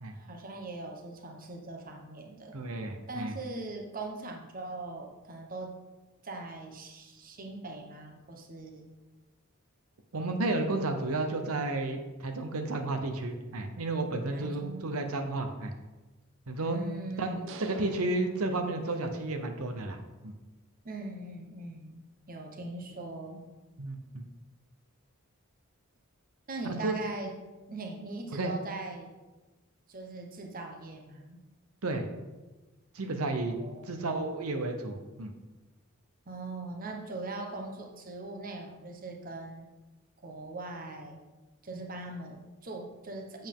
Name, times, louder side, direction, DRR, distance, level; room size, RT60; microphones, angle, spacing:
voice 1, 0.1-2.6 3.1-5.8 6.2-8.9 14.3-15.0 16.6-17.5 20.8-23.5 26.5-27.3 27.7-29.1 29.9-31.4 33.6-34.1 36.3-39.7 40.2-41.2 41.6-43.5, right 2 dB, 40° right, 2 dB, 1.1 m, -41 dB
voice 2, 2.5-3.3 10.1-15.7 16.5-16.8 17.2-17.3 17.6-20.0 20.2-20.3 23.8-24.2 26.6-26.9 28.3-28.5 31.8-32.1 32.9-33.6 33.8-35.3, right 2 dB, 90° right, 5 dB, 0.8 m, -32 dB
sound 1, 17.5-19.3, right 4 dB, 60° right, 0.6 m, -48 dB
7.8 x 7.0 x 3.7 m, 1.2 s
head